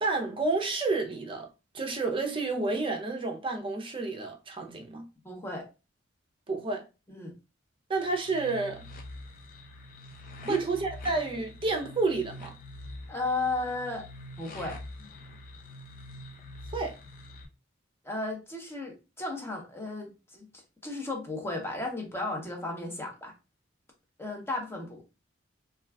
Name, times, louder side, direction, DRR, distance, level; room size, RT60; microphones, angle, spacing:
voice 1, 0.0-1.5 1.7-5.0 6.5-6.8 7.9-8.8 10.5-12.5 16.7-17.0, right 3 dB, 25° right, 0.5 m, -30 dB
voice 2, 5.2-5.7 7.1-7.3 10.4-10.6 13.1-14.1 14.4-15.1 18.0-20.5 20.8-23.3 24.2-25.0, left 2 dB, 10° left, 0.7 m, -34 dB
sound 1, 8.0-17.5, left 1 dB, 45° left, 0.5 m, -45 dB
2.3 x 2.3 x 3.3 m
head